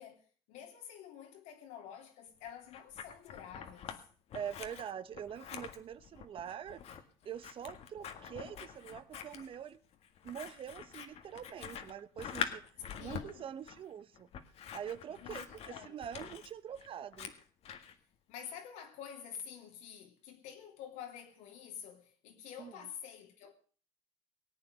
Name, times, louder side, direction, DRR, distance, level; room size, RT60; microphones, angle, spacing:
voice 1, 0.0-4.1 12.9-13.5 15.1-16.0 18.3-23.5, left 8 dB, 75° left, 3.2 m, -49 dB
Scissors, 2.4-4.0 4.3-17.9, left 8 dB, 55° left, 1.8 m, -45 dB
voice 2, 4.3-6.8 7.2-9.8 10.2-12.6 13.0-14.3 14.7-17.3 22.6-22.7, right 9 dB, 45° right, 1.0 m, -44 dB
19.0 x 8.7 x 6.7 m
supercardioid pair, 95°, 13 cm